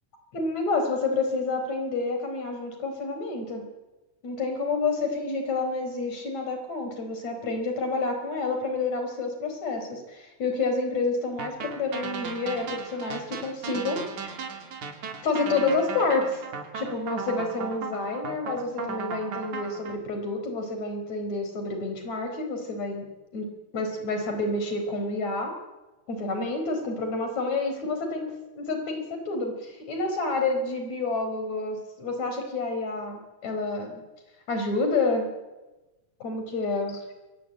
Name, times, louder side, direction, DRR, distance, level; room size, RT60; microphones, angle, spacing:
voice 1, 0.3-3.6 4.2-14.3 15.2-16.4 16.7-23.0 23.3-23.5 23.7-25.5 26.1-28.3 28.6-34.0 34.5-35.3 36.2-37.0, left 3 dB, 65° left, 5 dB, 5.9 m, -29 dB
sound 1, 11.4-19.9, right 6 dB, 75° right, 4.2 m, -36 dB
27.5 x 24.0 x 9.0 m, 1.1 s
omnidirectional pair, 3.4 m